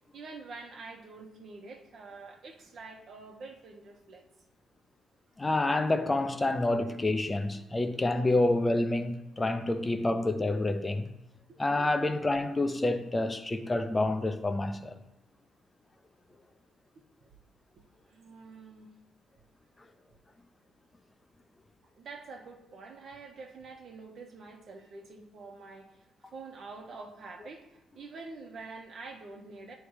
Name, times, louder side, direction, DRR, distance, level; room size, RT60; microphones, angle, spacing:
voice 1, 0.1-4.2 11.5-11.6 12.0-12.1 17.2-17.3 18.1-18.9 21.8-29.7, right 3 dB, 60° right, 1.2 m, -46 dB
voice 2, 5.4-11.1 11.6-14.9, left 2 dB, 20° left, 0.8 m, -28 dB
10.0 x 3.5 x 4.8 m
cardioid pair, 80°, 0 cm